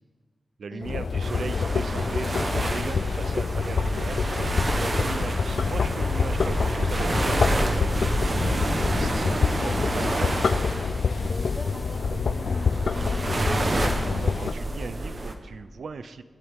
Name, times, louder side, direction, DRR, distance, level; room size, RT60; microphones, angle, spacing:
voice 1, 0.6-8.0 9.0-9.2 9.6-9.7 10.1-10.4 13.5-16.2, right 5 dB, 70° right, 11 dB, 0.7 m, -38 dB
sound 1, 0.8-14.5, left 5 dB, 60° left, 0.4 m, -27 dB
sound 2, 1.2-15.3, right 2 dB, 35° right, 1.2 m, -29 dB
voice 2, 8.9-13.7, left 1 dB, 30° left, 0 dB, 2.4 m, -40 dB
28.0 x 12.5 x 3.7 m, 1.5 s
wide cardioid pair, 180°, 0 cm